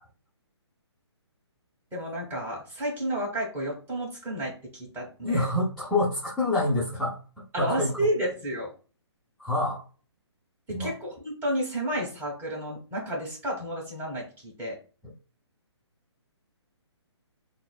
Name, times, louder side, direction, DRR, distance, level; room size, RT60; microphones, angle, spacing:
voice 1, 1.9-5.5 7.5-8.7 10.7-14.8, right 1 dB, 15° right, -2 dB, 1.3 m, -31 dB
voice 2, 5.2-7.2 7.6-7.9 9.4-9.8 10.7-10.9, left 2 dB, 5° left, -8 dB, 0.7 m, -26 dB
5.8 x 2.1 x 2.2 m, 0.38 s
hypercardioid pair, 145°, 15 cm